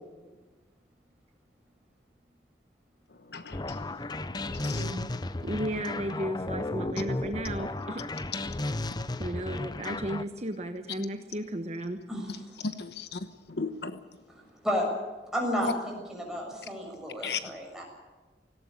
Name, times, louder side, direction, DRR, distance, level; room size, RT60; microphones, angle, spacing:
voice 1, 3.1-4.8 12.6-14.0 15.6-15.7 17.2-17.4, left 4 dB, 70° left, 10 dB, 1.1 m, -36 dB
sound 1, 3.5-10.2, left 2 dB, 25° left, 0.7 m, -34 dB
voice 2, 4.6-5.1 12.1-12.3 14.6-14.9 15.3-17.8, equal, 5° right, -1 dB, 6.6 m, -32 dB
voice 3, 5.4-8.0 9.2-12.0, equal, 40° right, 6 dB, 1.2 m, -34 dB
18.0 x 17.0 x 9.8 m, 1.3 s
head